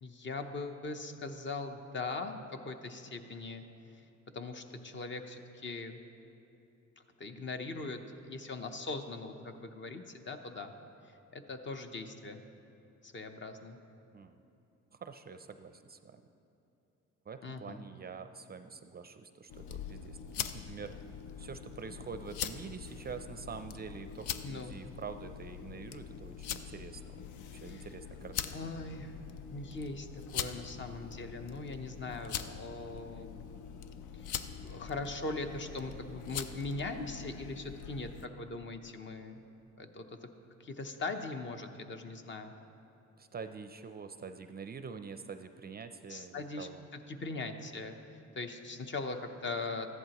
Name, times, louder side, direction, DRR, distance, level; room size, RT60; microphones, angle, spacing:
voice 1, 0.0-3.6 4.3-6.0 7.2-10.7 11.0-12.4 13.0-13.8 17.4-17.8 24.4-24.7 27.6-27.9 28.5-29.2 29.5-33.4 34.2-34.3 34.6-39.4 39.8-40.3 40.6-42.5 46.1-49.9, left 3 dB, 40° left, 6 dB, 0.8 m, -40 dB
voice 2, 15.0-16.2 17.3-20.9 21.4-27.2 27.5-28.5 43.2-46.8, right 5 dB, 30° right, 9 dB, 0.4 m, -46 dB
sound 1, 19.5-38.3, left 8 dB, 80° left, 0.5 m, -43 dB
14.0 x 10.5 x 3.0 m, 2.8 s
cardioid pair, 90°, 30 cm